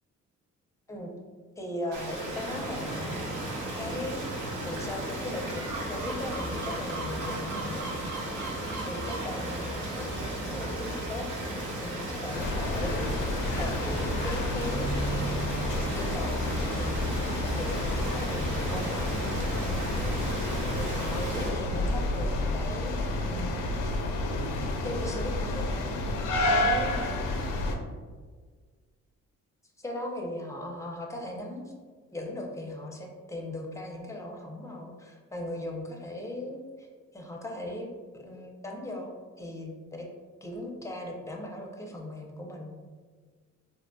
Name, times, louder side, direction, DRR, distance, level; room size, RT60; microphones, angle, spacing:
voice 1, 1.6-3.2 3.8-4.2 4.6-7.9 8.8-15.5 15.9-20.2 20.7-23.7 24.8-25.9 26.5-27.2 29.8-31.7 32.1-36.9 37.1-37.9 38.1-39.1 39.4-40.1 40.4-42.8, left 1 dB, 10° left, 0 dB, 0.5 m, -38 dB
sound 1, 1.9-21.5, right 1 dB, 85° right, 1.0 m, -37 dB
sound 2, 2.4-21.5, right 1 dB, 65° right, 0.6 m, -37 dB
sound 3, 12.3-27.8, left 2 dB, 90° left, 0.5 m, -30 dB
3.9 x 2.5 x 2.2 m, 1.5 s
cardioid pair, 90°, 30 cm